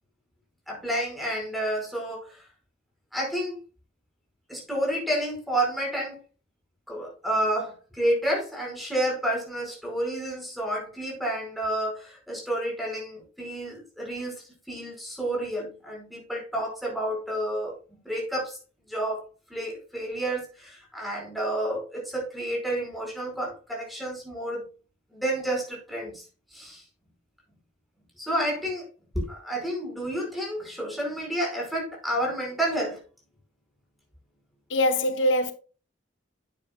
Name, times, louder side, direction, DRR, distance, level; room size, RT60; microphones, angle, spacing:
voice 1, 0.7-2.4 3.1-3.6 4.5-6.2 6.9-14.3 14.7-17.7 18.0-18.6 18.9-19.2 19.5-24.7 25.1-26.2 26.5-26.8 28.2-28.9 29.1-33.0, right 1 dB, ahead, 5.0 m, -30 dB
voice 2, 34.7-35.5, left 1 dB, 90° left, 1.0 m, -23 dB
10.5 x 8.9 x 2.3 m
head